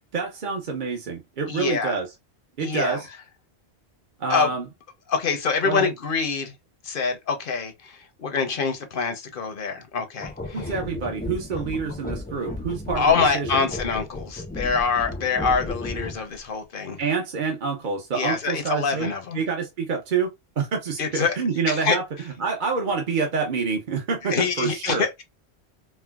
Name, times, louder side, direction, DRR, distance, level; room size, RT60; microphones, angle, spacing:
voice 1, 0.1-2.1 2.6-3.1 4.2-4.6 5.6-5.9 10.5-13.7 17.0-19.1 19.3-22.0 22.4-25.1, right 5 dB, 50° right, 0.8 m, -27 dB
voice 2, 1.5-2.0 2.6-3.0 4.3-4.5 5.1-6.5 6.8-10.8 12.9-17.0 18.1-19.4 21.0-21.4 21.7-22.0 24.2-25.2, left 5 dB, 55° left, 0.8 m, -25 dB
sound 1, 10.2-16.4, left 2 dB, 15° left, 0.3 m, -34 dB
4.4 x 2.1 x 2.2 m
omnidirectional pair, 1.1 m